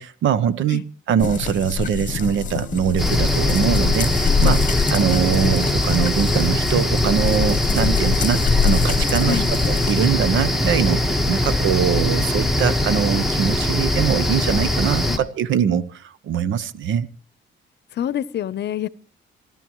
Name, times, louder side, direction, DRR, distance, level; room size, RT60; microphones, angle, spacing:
voice 1, 0.0-17.1, right 8 dB, 75° right, 17 dB, 0.9 m, -22 dB
sound 1, 1.2-10.1, left 7 dB, 40° left, 1.0 m, -24 dB
sound 2, 2.1-14.0, left 2 dB, 25° right, 4.5 m, -43 dB
sound 3, 3.0-15.2, left 1 dB, ahead, 1.4 m, -21 dB
voice 2, 17.9-18.9, left 10 dB, 60° left, 18 dB, 0.7 m, -26 dB
27.5 x 12.5 x 3.1 m, 0.41 s
cardioid pair, 90°, 20 cm